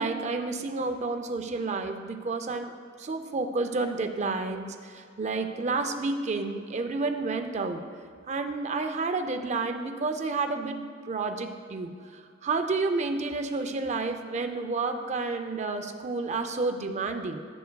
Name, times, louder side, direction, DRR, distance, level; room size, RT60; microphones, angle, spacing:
voice 1, 0.0-2.7 3.0-7.8 8.3-17.4, right 3 dB, 35° right, 6 dB, 0.4 m, -30 dB
11.5 x 6.9 x 2.2 m, 2.3 s
head